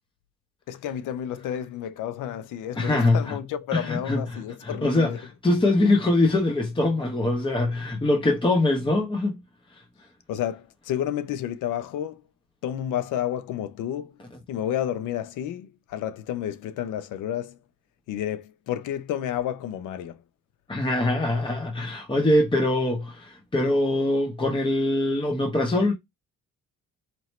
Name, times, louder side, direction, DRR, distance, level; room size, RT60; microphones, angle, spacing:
voice 1, 0.7-5.2 10.3-12.2 12.6-14.2 14.5-17.6 18.1-20.2, left 10 dB, 90° left, 0.7 m, -31 dB
voice 2, 2.7-3.4 3.7-9.4 9.7-9.8 20.7-25.9, left 2 dB, 15° left, 0.9 m, -23 dB
4.5 x 2.8 x 3.1 m
cardioid pair, 90°, 30 cm